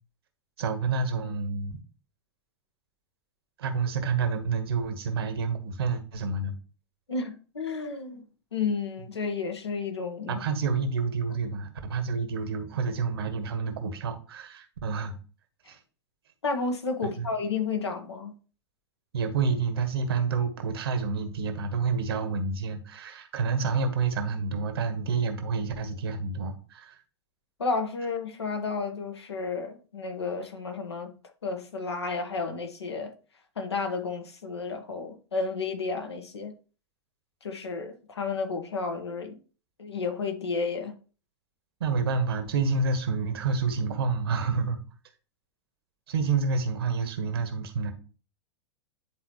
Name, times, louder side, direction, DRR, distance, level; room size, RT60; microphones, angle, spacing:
voice 1, 0.6-1.8 3.6-6.5 10.3-15.1 15.7-15.8 17.0-17.3 19.1-27.0 41.8-44.8 46.1-47.9, right 4 dB, 60° right, 1.3 m, -28 dB
voice 2, 7.1-8.2 8.5-10.4 16.4-18.3 27.6-31.1 31.4-33.1 33.6-36.5 37.4-39.4 39.8-40.9, left 4 dB, 75° left, 1.3 m, -32 dB
10.0 x 4.0 x 3.0 m
figure-of-eight pair, 90°, 14 cm